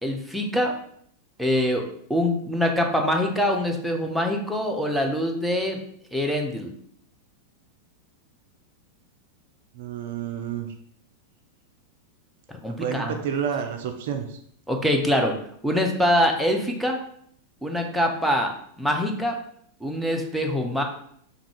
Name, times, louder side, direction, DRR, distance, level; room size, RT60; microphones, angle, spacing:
voice 1, 0.0-0.7 1.4-1.8 2.1-5.8 6.1-6.7 12.5-13.1 14.7-15.3 15.6-17.0 17.6-18.5 18.8-19.3 19.8-20.8, left 1 dB, ahead, 1 dB, 0.5 m, -24 dB
voice 2, 9.7-10.7 12.7-14.4, right 8 dB, 55° right, 5 dB, 0.4 m, -30 dB
3.5 x 2.3 x 3.3 m, 0.65 s
figure-of-eight pair, 90°, 0 cm